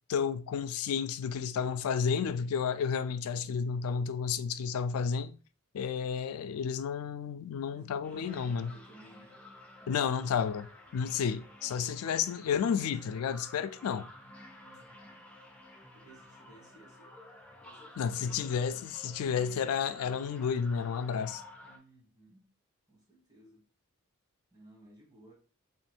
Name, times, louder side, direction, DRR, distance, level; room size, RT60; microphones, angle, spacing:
voice 1, 0.1-5.3 5.7-8.7 9.9-10.7 10.9-14.1 18.0-21.4, left 6 dB, 90° left, 0.3 m, -31 dB
voice 2, 7.7-9.4 9.8-10.4 14.6-15.2 15.9-17.2 17.5-18.5 21.6-22.5 22.9-23.6 24.5-25.3, right 1 dB, 20° right, 1.3 m, -58 dB
sound 1, 8.0-21.8, left 1 dB, 5° left, 0.4 m, -52 dB
3.1 x 2.4 x 4.3 m
head